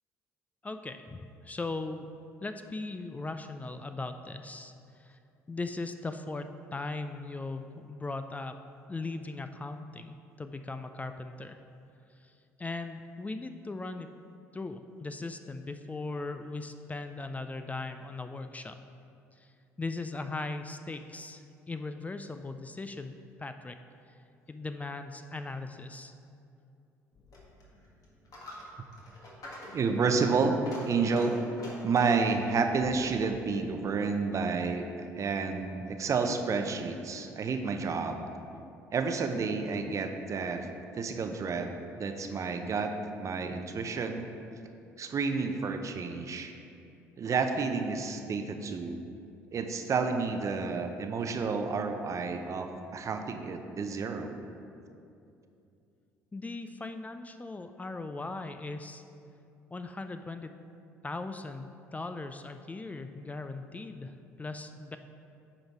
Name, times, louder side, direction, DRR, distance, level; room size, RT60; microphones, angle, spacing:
voice 1, 0.6-2.1 2.4-5.2 5.5-8.6 8.9-11.6 12.2-12.3 12.6-14.1 14.5-18.7 19.4-19.5 19.8-23.1 23.4-23.8 24.5-26.1 56.3-59.0 59.7-60.5 61.0-65.0, left 3 dB, 20° left, 8 dB, 0.4 m, -39 dB
Coin (dropping), 27.1-34.6, left 1 dB, 50° left, 1.8 m, -46 dB
voice 2, 29.7-30.6 30.8-31.3 31.8-38.2 38.9-40.7 40.9-44.2 45.0-46.5 47.2-49.0 49.5-54.4, right 4 dB, 40° right, 6 dB, 0.7 m, -30 dB
9.7 x 3.9 x 4.6 m, 2.6 s
hypercardioid pair, 55°, 8 cm